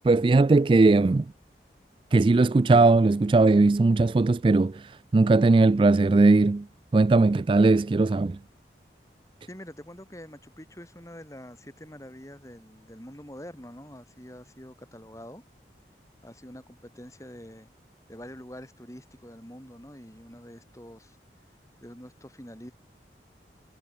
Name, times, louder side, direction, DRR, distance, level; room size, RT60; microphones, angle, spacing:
voice 1, 0.0-1.3 2.1-6.7 6.9-8.4, right 3 dB, 30° right, 0.3 m, -19 dB
voice 2, 9.5-15.4 16.2-17.7 18.1-21.2 21.8-22.7, equal, 20° left, 5.9 m, -45 dB
head